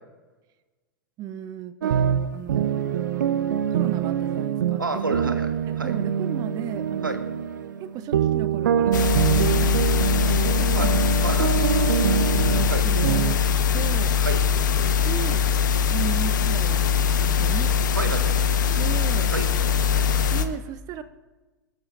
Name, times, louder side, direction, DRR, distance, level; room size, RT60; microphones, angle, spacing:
voice 1, 1.2-2.9 3.7-5.4 5.7-7.2 7.8-9.8 10.1-11.0 11.6-11.7 12.1-13.2 13.7-14.1 15.0-15.5 15.8-16.9 17.2-18.2 18.8-19.3 20.3-21.0, right 9 dB, 35° right, 12 dB, 0.7 m, -36 dB
sound 1, 1.8-13.4, right 8 dB, 70° right, 0.7 m, -24 dB
voice 2, 4.8-5.5 5.8-5.9 7.0-7.2 10.7-10.9 11.2-11.5 12.7-12.8 14.2-14.9 17.9-18.3 19.3-19.5, right 3 dB, 85° right, 7 dB, 1.5 m, -29 dB
sound 2, 8.9-20.4, left 7 dB, 70° left, 1.2 m, -22 dB
25.0 x 13.0 x 2.6 m, 1.2 s
figure-of-eight pair, 95°, 11 cm